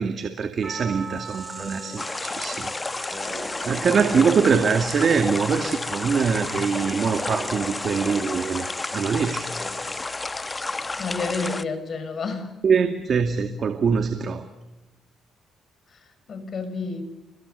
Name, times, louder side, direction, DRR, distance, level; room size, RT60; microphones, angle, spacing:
voice 1, 0.0-3.3 3.6-8.6 8.9-9.5 12.6-14.4, right 6 dB, 50° right, 7 dB, 2.3 m, -23 dB
Percussion, 0.6-5.6, right 5 dB, 30° right, 5.2 m, -42 dB
sound 1, 0.9-10.5, equal, 5° left, 6.9 m, -39 dB
sound 2, 2.0-11.6, left 3 dB, 20° left, 1.2 m, -31 dB
voice 2, 11.0-12.5 15.9-17.0, left 4 dB, 50° left, 10 dB, 6.3 m, -30 dB
29.5 x 23.5 x 6.8 m, 1.0 s
cardioid pair, 90°, 0 cm